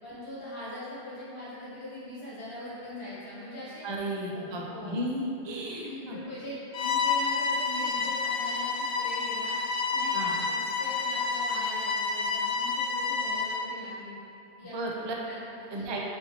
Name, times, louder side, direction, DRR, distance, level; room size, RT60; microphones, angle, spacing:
voice 1, 0.0-3.9 4.3-5.1 5.8-9.5 9.9-14.2 14.6-14.9 15.3-16.0, left 1 dB, 60° left, -10 dB, 1.4 m, -42 dB
voice 2, 3.8-6.2 10.1-10.3 14.7-15.1 15.7-16.0, right 1 dB, 45° right, -2 dB, 0.3 m, -34 dB
Bowed string instrument, 6.7-13.7, left 4 dB, 80° left, 0.9 m, -29 dB
4.2 x 4.1 x 2.8 m, 2.7 s
omnidirectional pair, 1.1 m